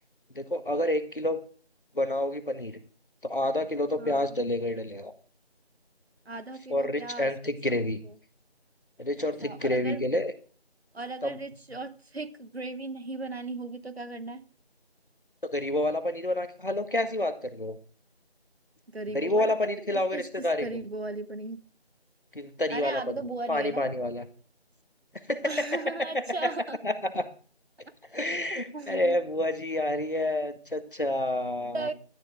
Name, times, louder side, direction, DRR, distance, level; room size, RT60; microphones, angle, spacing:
voice 1, 0.3-1.4 1.9-2.7 3.2-5.1 6.7-8.0 9.0-10.3 11.2-11.4 15.4-17.8 19.1-20.7 22.3-24.3 25.3-26.5 26.8-27.3 28.1-31.9, left 1 dB, 55° left, 1.5 m, -29 dB
voice 2, 4.0-4.4 6.3-7.3 8.0-8.1 9.4-10.0 10.9-14.4 18.9-21.6 22.7-23.9 25.4-26.8 28.5-29.2 31.7-31.9, right 2 dB, 70° right, 1.2 m, -37 dB
13.0 x 9.7 x 4.8 m
figure-of-eight pair, 175°, 32 cm